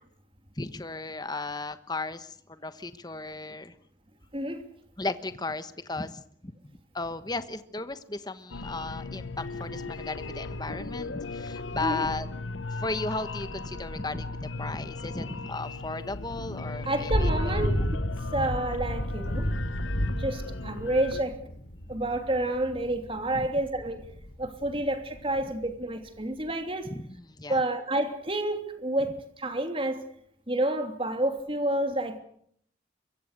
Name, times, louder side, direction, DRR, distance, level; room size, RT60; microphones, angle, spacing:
voice 1, 0.6-3.7 5.0-6.5 6.9-12.3 12.7-17.6 23.3-23.5 26.9-27.6, left 3 dB, 20° left, 1.2 m, -35 dB
voice 2, 4.3-4.6 11.8-12.1 16.8-17.7 18.3-19.5 20.2-21.4 21.9-24.1 24.4-26.9 27.5-30.0 30.5-32.2, right 1 dB, 30° right, 2.9 m, -29 dB
sound 1, 8.5-21.2, left 3 dB, 90° left, 1.0 m, -37 dB
Thunder / Rain, 16.2-25.7, equal, 65° left, 4.0 m, -32 dB
24.5 x 23.0 x 6.7 m
head